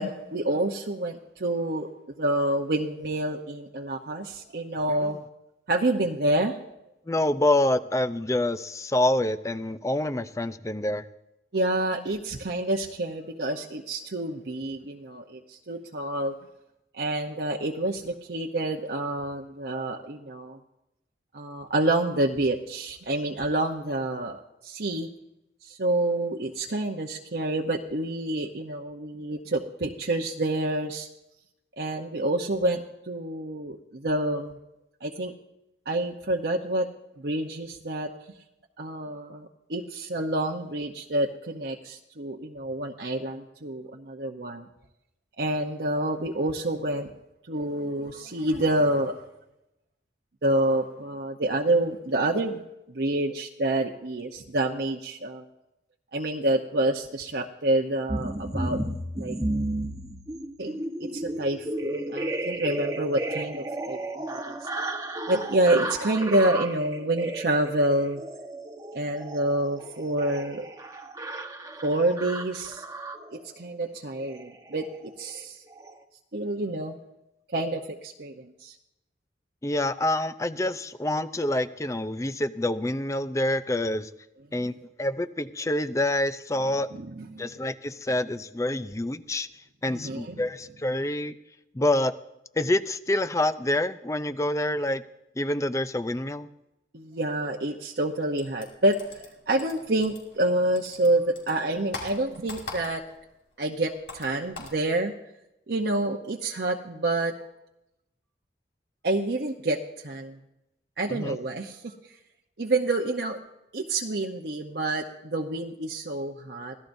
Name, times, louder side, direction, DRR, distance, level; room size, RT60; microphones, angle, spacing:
voice 1, 0.0-1.9 2.2-5.2 5.7-6.6 11.5-16.3 16.9-20.6 21.3-25.1 25.6-31.1 31.8-34.6 35.0-35.3 35.9-36.9 37.2-38.1 38.8-44.7 45.4-47.1 47.5-49.2 50.4-52.6 52.9-55.4 56.1-58.8 59.1-59.4 60.6-64.6 65.3-68.2 68.9-70.7 71.8-72.8 73.3-75.6 76.3-77.0 77.5-78.7 84.6-84.7 86.9-87.5 89.9-90.4 96.9-103.0 103.6-105.1 105.7-107.3 109.0-110.4 111.0-111.9 112.6-113.4 113.7-116.8, right 1 dB, 60° right, 1 dB, 0.8 m, -28 dB
voice 2, 7.1-11.1 79.6-84.1 84.5-84.7 85.0-86.9 87.4-89.5 89.8-91.3 91.7-92.1 92.6-95.0 95.4-96.5 111.1-111.4, left 1 dB, 15° left, 13 dB, 0.5 m, -27 dB
sound 1, 58.1-73.5 74.2-74.5 74.7-75.0 75.2-75.4 75.7-75.9, right 1 dB, 20° right, 1.1 m, -33 dB
sound 2, 98.4-100.5 100.8-103.2 103.5-104.8, left 2 dB, 90° left, 5.5 m, -41 dB
25.5 x 17.0 x 2.7 m, 0.91 s
head